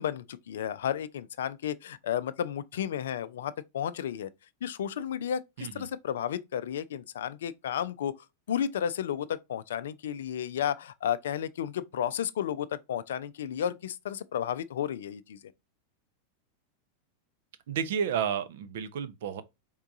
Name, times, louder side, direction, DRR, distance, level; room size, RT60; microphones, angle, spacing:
voice 1, 0.0-4.3 4.6-8.1 8.5-15.4, left 9 dB, 60° left, 0.4 m, -32 dB
voice 2, 17.7-19.4, right 7 dB, 55° right, 0.6 m, -31 dB
4.6 x 3.6 x 2.5 m
figure-of-eight pair, 90°, 0 cm